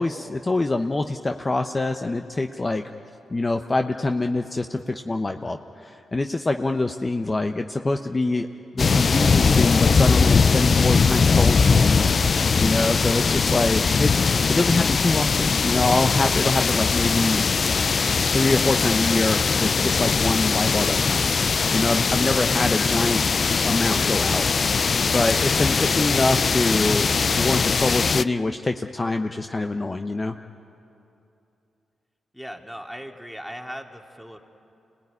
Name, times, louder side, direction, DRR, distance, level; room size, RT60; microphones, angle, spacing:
voice 1, 0.0-2.8 3.3-8.5 8.7-17.4 18.3-21.3 21.7-23.2 23.6-24.8 25.1-27.1 27.3-30.4, left 2 dB, 30° left, 5 dB, 1.0 m, -25 dB
sound 1, 8.8-28.2, left 5 dB, 50° left, 0.5 m, -21 dB
voice 2, 32.3-34.4, equal, ahead, 2 dB, 2.5 m, -38 dB
27.0 x 18.5 x 9.8 m, 2.7 s
supercardioid pair, 55°, 0 cm